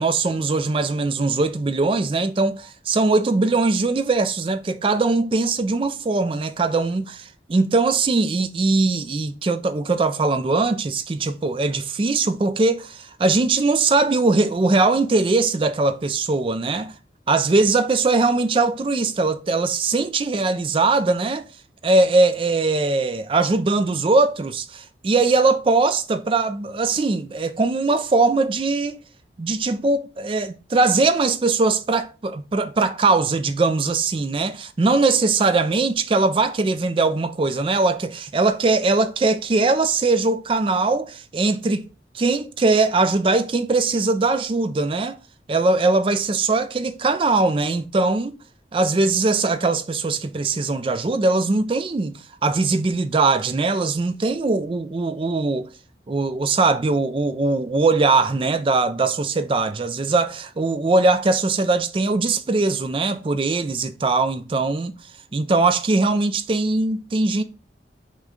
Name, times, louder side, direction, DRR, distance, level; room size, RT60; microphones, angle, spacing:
voice 1, 0.0-16.9 17.3-21.5 21.8-29.0 29.4-41.8 42.1-45.2 45.5-48.4 48.7-52.1 52.4-55.7 56.1-64.9 65.3-67.4, right 3 dB, 30° right, 0.3 m, -21 dB
6.0 x 2.2 x 3.7 m
head